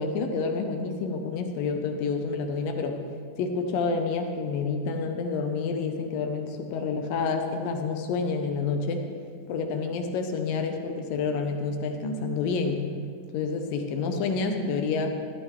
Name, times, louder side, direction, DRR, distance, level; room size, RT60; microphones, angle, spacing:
voice 1, 0.0-3.0 3.4-9.0 9.5-12.8 13.3-15.1, left 4 dB, 75° left, 5 dB, 2.2 m, -28 dB
13.5 x 13.0 x 3.7 m, 2.1 s
omnidirectional pair, 4.5 m